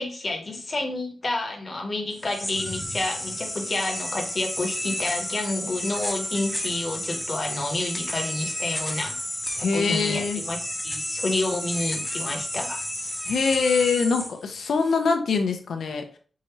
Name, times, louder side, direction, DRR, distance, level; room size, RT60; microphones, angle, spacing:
voice 1, 0.0-9.2 9.6-12.8, left 2 dB, 40° left, 2 dB, 1.1 m, -29 dB
sound 1, 2.1-14.9, left 1 dB, 5° left, 0.7 m, -32 dB
voice 2, 9.6-10.4 13.3-16.2, left 5 dB, 75° left, 5 dB, 0.6 m, -24 dB
4.7 x 2.8 x 3.1 m, 0.42 s
wide cardioid pair, 110°, 0 cm